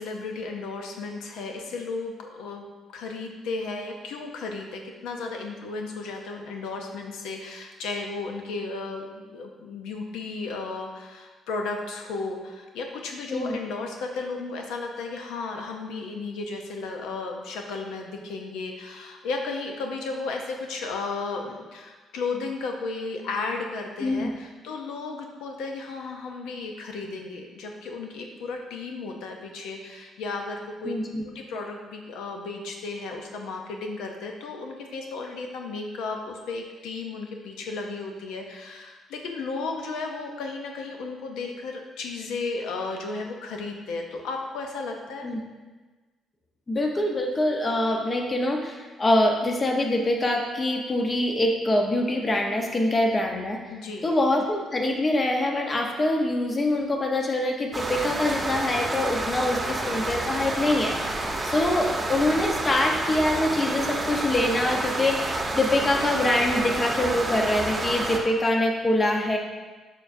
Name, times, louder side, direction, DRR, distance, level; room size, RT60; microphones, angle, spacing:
voice 1, 0.0-30.9 31.3-45.3 53.7-54.1, left 3 dB, 90° left, 3 dB, 0.6 m, -34 dB
voice 2, 30.8-31.2 45.2-45.4 46.7-53.6 54.0-69.4, left 1 dB, 30° left, 2 dB, 0.9 m, -24 dB
sound 1, 57.7-68.2, right 2 dB, 20° right, 0.9 m, -29 dB
6.8 x 6.1 x 2.6 m, 1.3 s
cardioid pair, 90°, 0 cm